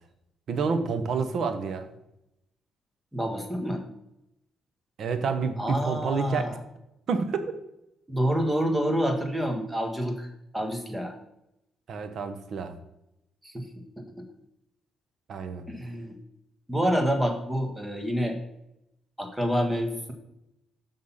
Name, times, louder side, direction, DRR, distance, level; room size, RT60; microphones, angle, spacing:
voice 1, 0.5-1.9 5.0-6.4 7.1-7.6 11.9-12.7 15.3-15.6, right 5 dB, 60° right, 9 dB, 1.0 m, -28 dB
voice 2, 3.1-3.8 5.6-6.6 8.1-10.3 10.5-11.1 13.4-13.7 14.0-14.2 15.7-16.2 16.7-18.4 19.2-20.1, equal, 5° right, 5 dB, 1.5 m, -28 dB
6.6 x 5.6 x 5.6 m, 0.87 s
cardioid pair, 90°, 0 cm